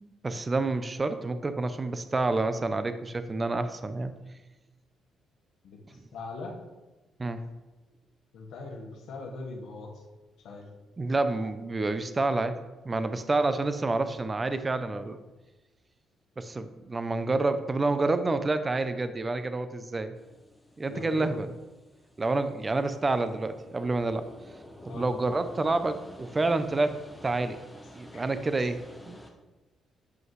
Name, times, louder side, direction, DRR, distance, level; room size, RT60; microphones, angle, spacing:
voice 1, 0.0-4.1 7.2-7.4 11.0-12.6 12.8-15.2 16.4-20.1 20.8-21.5 22.2-24.2 24.9-26.9 27.2-27.6 27.9-28.8 29.1-29.2, right 3 dB, 25° right, 11 dB, 0.5 m, -28 dB
voice 2, 5.6-6.6 8.3-9.9 10.4-10.7 20.9-21.3 24.9-25.1 28.1-28.2, left 3 dB, 75° left, 0 dB, 1.2 m, -40 dB
sound 1, 20.1-29.3, left 1 dB, 5° left, 0.9 m, -50 dB
7.9 x 5.3 x 3.1 m, 1.1 s
cardioid pair, 90°, 0 cm